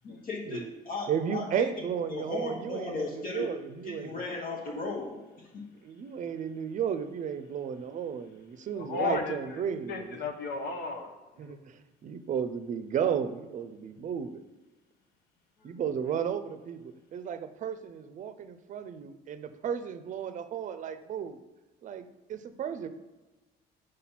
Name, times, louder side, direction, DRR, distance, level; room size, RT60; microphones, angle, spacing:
voice 1, 0.0-1.7 2.1-3.5 3.8-5.6, left 3 dB, 55° left, -2 dB, 1.2 m, -36 dB
voice 2, 1.1-4.1 5.8-10.2 11.4-14.4 15.6-21.4 21.8-22.9, right 8 dB, 50° right, 11 dB, 0.6 m, -34 dB
voice 3, 8.7-9.6 9.9-11.6 15.6-15.8, left 4 dB, 70° left, 4 dB, 1.1 m, -35 dB
5.0 x 4.2 x 5.8 m, 1.1 s
cardioid pair, 110°, 17 cm